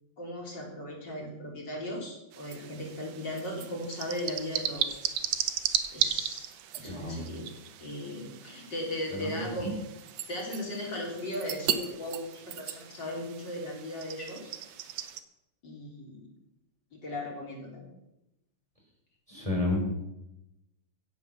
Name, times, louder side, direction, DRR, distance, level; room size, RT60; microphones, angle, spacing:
voice 1, 0.2-5.0 5.9-6.5 6.8-7.5 7.8-9.7 10.3-14.5 15.6-16.2 16.9-17.9, left 1 dB, 30° left, -2 dB, 3.7 m, -37 dB
sound 1, 2.3-15.2, right 10 dB, 75° right, 1.5 m, -36 dB
voice 2, 6.8-7.2 9.1-9.5 19.3-19.8, left 2 dB, 10° right, -2 dB, 4.2 m, -31 dB
16.5 x 6.8 x 7.0 m, 0.89 s
omnidirectional pair, 4.0 m